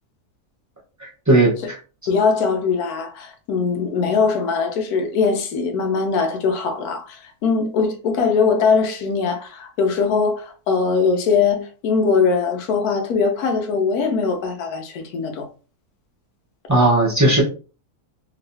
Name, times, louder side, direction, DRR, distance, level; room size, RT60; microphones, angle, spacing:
voice 1, 1.0-1.8 16.7-17.4, right 2 dB, 15° right, 0.8 m, -17 dB
voice 2, 2.1-15.5, left 5 dB, 75° left, 1.2 m, -21 dB
3.0 x 2.7 x 2.7 m
omnidirectional pair, 1.6 m